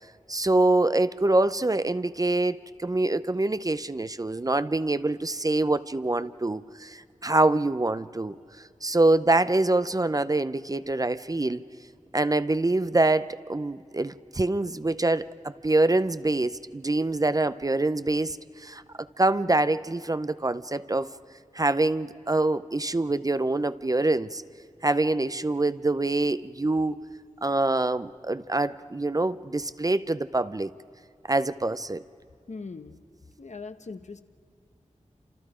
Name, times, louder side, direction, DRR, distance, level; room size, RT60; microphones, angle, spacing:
voice 1, 0.3-8.4 8.8-11.6 12.1-18.8 19.2-21.1 21.5-24.4 24.8-27.0 27.4-30.7 31.3-32.0, right 2 dB, 30° right, 14 dB, 0.6 m, -25 dB
voice 2, 32.5-33.0 33.4-34.2, left 4 dB, 65° left, 9 dB, 1.1 m, -40 dB
29.0 x 27.0 x 5.0 m, 2.4 s
wide cardioid pair, 80°, 13 cm